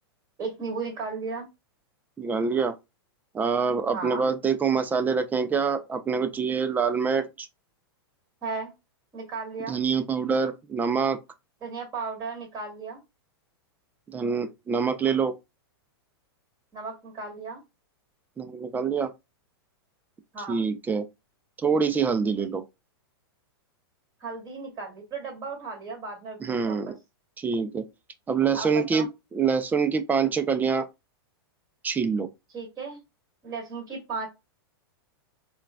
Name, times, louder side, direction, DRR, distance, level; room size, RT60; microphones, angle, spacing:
voice 1, 0.4-1.5 3.9-4.3 8.4-8.7 9.1-9.8 11.6-13.0 16.7-17.6 20.3-20.6 24.2-26.9 28.5-29.1 32.5-33.0 33.4-34.3, right 4 dB, 30° right, 2.1 m, -35 dB
voice 2, 2.2-2.7 3.3-7.5 9.7-11.2 14.1-15.3 18.4-19.1 20.5-21.0 21.6-22.6 26.4-26.9 27.4-27.8 28.3-30.9 31.8-32.3, right 5 dB, 15° right, 0.4 m, -25 dB
4.5 x 2.2 x 2.2 m
hypercardioid pair, 125°, 13 cm